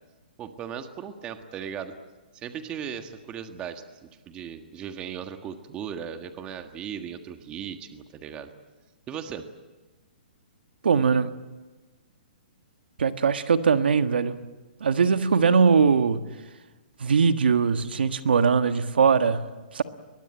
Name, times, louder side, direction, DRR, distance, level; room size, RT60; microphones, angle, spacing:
voice 1, 0.4-1.9 2.3-8.5 9.1-9.5, right 8 dB, 20° right, 1.6 m, -37 dB
voice 2, 10.8-11.3 13.0-14.4 14.8-16.2 17.0-19.8, right 5 dB, 85° right, 1.5 m, -21 dB
23.0 x 21.0 x 9.0 m
hypercardioid pair, 155°, 5 cm